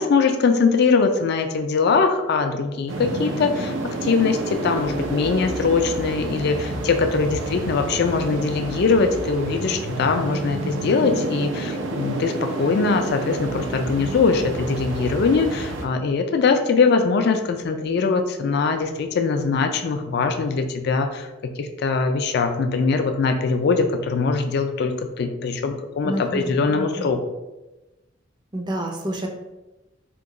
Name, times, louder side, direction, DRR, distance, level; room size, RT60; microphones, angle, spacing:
voice 1, 0.0-3.7 4.0-27.2, left 4 dB, 60° left, 7 dB, 0.4 m, -22 dB
sound 1, 2.9-15.9, right 2 dB, 90° right, 0.4 m, -29 dB
voice 2, 26.0-27.1 28.5-29.3, right 1 dB, 25° right, 2 dB, 0.4 m, -29 dB
2.9 x 2.2 x 3.6 m, 1.0 s
head